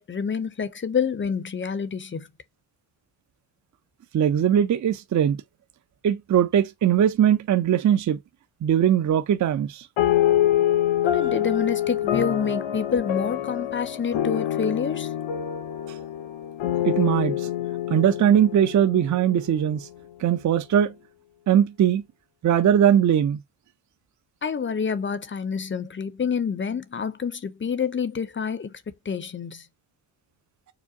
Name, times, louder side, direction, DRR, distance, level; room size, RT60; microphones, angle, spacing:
voice 1, 0.0-2.3 11.0-15.1 24.4-29.7, left 6 dB, 25° left, 0.6 m, -28 dB
voice 2, 4.1-5.4 6.0-8.2 8.6-9.9 16.8-17.5 17.9-19.9 20.2-20.9 21.5-22.0 22.4-23.4, right 9 dB, 40° right, 0.5 m, -20 dB
sound 1, 10.0-19.7, left 11 dB, 70° left, 0.9 m, -26 dB
4.9 x 2.2 x 2.7 m
cardioid pair, 95°, 48 cm